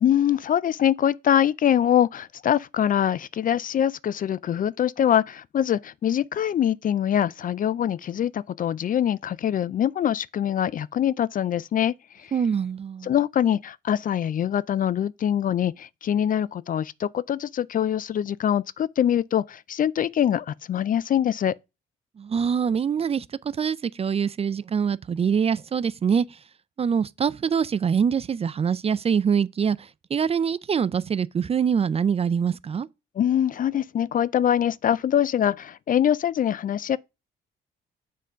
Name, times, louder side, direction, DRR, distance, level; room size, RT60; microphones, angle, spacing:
voice 1, 0.0-11.9 12.2-12.3 13.0-21.5 33.2-37.0, left 10 dB, 45° left, 0.4 m, -24 dB
voice 2, 12.3-13.1 22.2-26.4 26.8-32.9, right 7 dB, 30° right, 0.3 m, -24 dB
7.5 x 3.8 x 5.6 m
cardioid pair, 90°, 20 cm